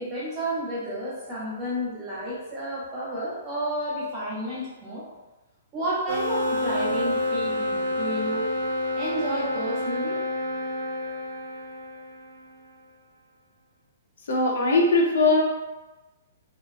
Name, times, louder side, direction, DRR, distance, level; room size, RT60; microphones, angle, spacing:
voice 1, 0.0-5.1 5.7-8.5 8.9-10.2, right 1 dB, 20° right, -7 dB, 0.8 m, -31 dB
sound 1, 6.1-12.5, left 1 dB, 80° right, 0.5 m, -28 dB
voice 2, 14.3-15.4, left 2 dB, 70° left, -1 dB, 0.6 m, -20 dB
2.4 x 2.2 x 2.4 m, 1.1 s
hypercardioid pair, 170°, 0 cm